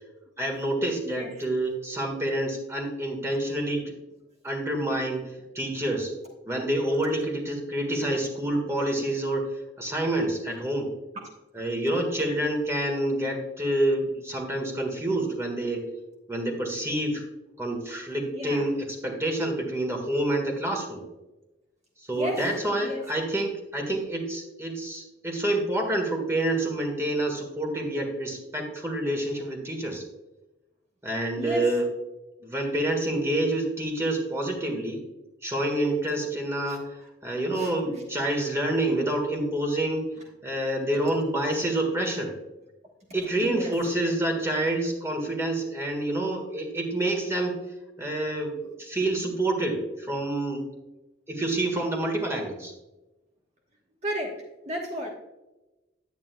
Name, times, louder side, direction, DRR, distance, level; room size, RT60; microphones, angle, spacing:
voice 1, 0.4-3.9 4.4-5.2 5.5-6.1 6.4-10.9 11.5-15.9 16.3-17.3 17.6-21.0 22.1-30.0 31.0-31.8 32.4-35.0 35.4-36.9 37.2-40.1 40.4-42.3 43.1-47.6 48.0-50.6 51.3-52.7, right 1 dB, 15° right, 1 dB, 1.7 m, -28 dB
voice 2, 1.0-1.5 11.1-11.2 18.3-18.7 22.1-23.1 31.3-31.7 36.7-36.8 37.5-37.7 43.4-43.8 54.0-55.1, equal, 40° right, -1 dB, 1.3 m, -34 dB
9.8 x 9.3 x 2.3 m, 1.0 s
head